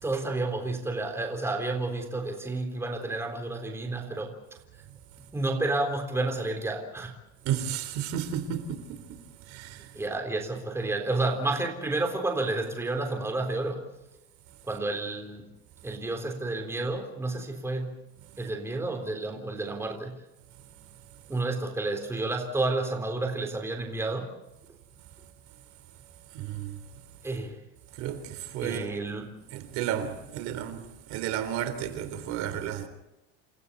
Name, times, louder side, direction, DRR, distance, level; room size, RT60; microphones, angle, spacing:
voice 1, 0.0-4.4 5.3-7.1 9.9-13.9 14.7-15.4 15.8-17.9 18.4-20.2 21.3-24.3 27.2-27.6 28.6-29.3, right 2 dB, 10° right, 3.6 m, -30 dB
voice 2, 7.4-9.2 9.5-9.9 26.3-26.8 27.9-28.9 29.5-32.9, right 10 dB, 60° right, 3.8 m, -33 dB
29.0 x 28.0 x 4.2 m
cardioid pair, 160°, 31 cm